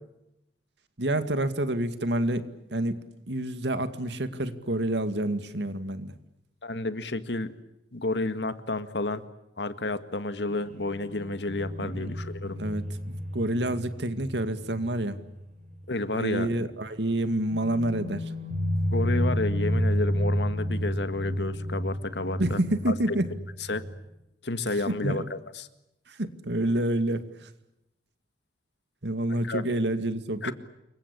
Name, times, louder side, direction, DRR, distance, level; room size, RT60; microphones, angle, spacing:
voice 1, 1.0-6.1 11.8-12.1 12.6-15.2 16.1-18.2 22.4-23.2 25.0-25.2 26.2-27.2 29.0-30.5, right 1 dB, 80° right, 10 dB, 2.2 m, -28 dB
voice 2, 6.6-7.5 7.9-9.2 9.6-12.6 15.9-16.5 18.9-22.6 22.9-23.2 23.7-23.9 24.4-25.7 29.3-29.6 30.4-30.5, left 2 dB, 75° left, 11 dB, 1.9 m, -31 dB
sound 1, 10.5-15.9 16.2-16.3 17.5-24.1, equal, 45° right, 7.0 m, -31 dB
28.5 x 23.5 x 8.6 m, 0.87 s
head